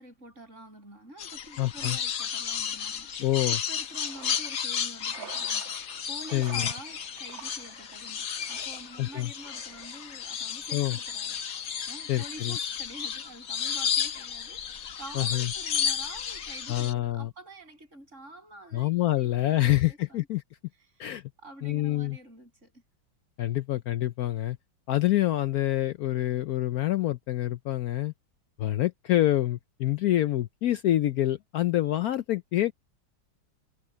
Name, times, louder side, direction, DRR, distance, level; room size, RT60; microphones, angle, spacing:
voice 1, 0.0-20.3 21.4-22.7, right 1 dB, 35° right, 8.0 m, -48 dB
sound 1, 1.2-16.9, left 7 dB, 50° left, 1.3 m, -33 dB
voice 2, 1.6-2.0 3.2-3.6 6.3-6.6 9.0-9.3 10.7-11.0 12.1-12.6 15.1-15.5 16.7-17.3 18.7-20.4 21.0-21.2 21.6-22.2 23.4-24.6 24.9-28.1 28.6-32.7, left 14 dB, 90° left, 0.8 m, -26 dB
sound 2, 3.7-12.4, right 7 dB, 70° right, 2.3 m, -50 dB
omnidirectional pair, 2.3 m